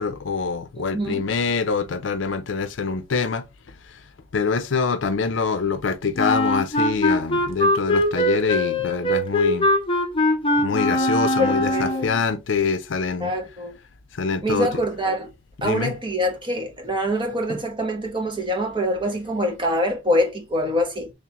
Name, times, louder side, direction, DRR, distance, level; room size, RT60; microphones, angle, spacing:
voice 1, 0.0-3.4 4.3-9.7 10.6-13.3 14.1-14.8 15.6-15.9, left 5 dB, 75° left, 0.5 m, -25 dB
voice 2, 0.8-1.2 10.9-11.1 11.4-12.1 13.2-13.8 14.4-15.3 15.6-21.1, equal, 25° right, 1.0 m, -25 dB
Wind instrument woodwind instrument, 6.2-12.2, left 1 dB, 25° left, 0.6 m, -21 dB
3.6 x 3.4 x 2.9 m
head